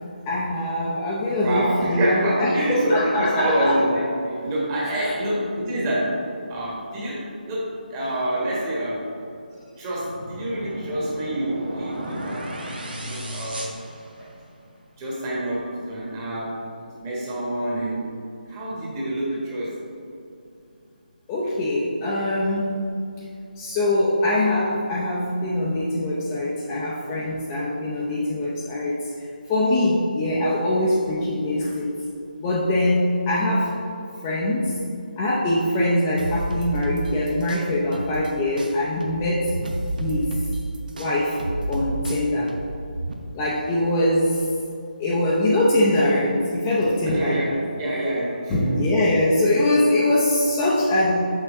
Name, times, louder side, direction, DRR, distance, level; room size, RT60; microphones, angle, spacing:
voice 1, 0.3-3.8 4.8-5.1 14.2-14.3 21.3-22.8 23.6-31.9 32.4-33.8 34.2-34.8 35.2-39.5 40.0-40.3 40.9-41.4 41.7-42.5 43.3-44.4 45.0-47.6 48.5-51.3, left 1 dB, 15° left, -6 dB, 0.6 m, -23 dB
voice 2, 1.4-6.2 6.5-9.0 9.8-12.7 13.0-13.7 15.0-16.6 17.0-18.1 18.5-19.8 47.1-48.9, right 1 dB, 20° right, -6 dB, 1.5 m, -27 dB
sound 1, 10.0-14.6, equal, 80° right, 1.4 m, -35 dB
sound 2, 36.2-38.3 38.6-43.1, right 2 dB, 60° right, 0.8 m, -30 dB
6.4 x 5.9 x 3.6 m, 2.6 s
figure-of-eight pair, 160°, 5 cm